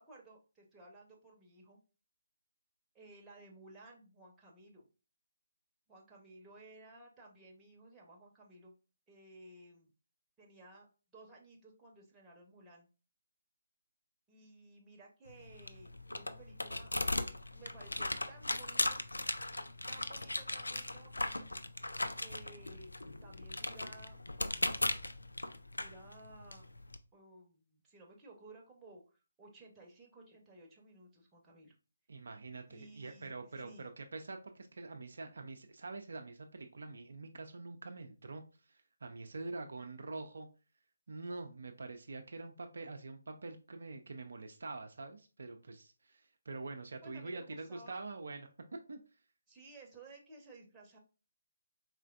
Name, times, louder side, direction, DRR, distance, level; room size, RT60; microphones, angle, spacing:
voice 1, 0.0-1.8 2.9-4.8 5.9-8.7 9.1-9.9 10.4-10.9 11.1-12.9 14.3-19.0 19.9-21.5 22.2-22.9 23.2-24.2 24.4-24.9 25.8-26.7 27.1-31.8 32.7-33.9 47.0-48.0 49.5-51.0, right 2 dB, 10° right, -2 dB, 0.9 m, -57 dB
sound 1, 15.3-27.0, left 2 dB, 80° left, 0.4 m, -38 dB
voice 2, 32.1-38.4 38.7-40.5 41.1-48.5 48.9-49.0, right 3 dB, 60° right, 5 dB, 0.5 m, -45 dB
4.3 x 3.2 x 2.4 m, 0.33 s
figure-of-eight pair, 145°, 0 cm